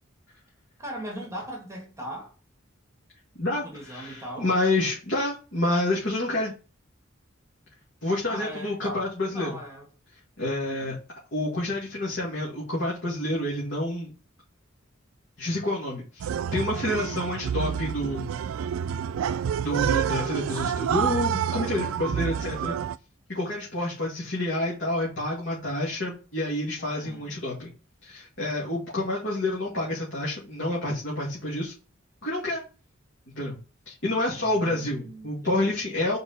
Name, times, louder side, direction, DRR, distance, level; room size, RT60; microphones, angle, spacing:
voice 1, 0.8-2.3 3.4-4.5 8.2-9.9 10.6-10.9 26.8-27.3 34.4-35.7, right 1 dB, 15° right, 1.9 m, -39 dB
voice 2, 3.4-6.5 8.0-9.5 10.4-11.0 11.3-14.1 15.4-18.4 19.6-22.7 23.3-27.7 28.0-31.7 32.2-32.6 33.4-33.6 33.9-36.2, left 1 dB, 65° left, 2.2 m, -28 dB
sound 1, 16.2-22.9, right 8 dB, 80° right, 0.3 m, -28 dB
4.8 x 4.8 x 5.5 m
head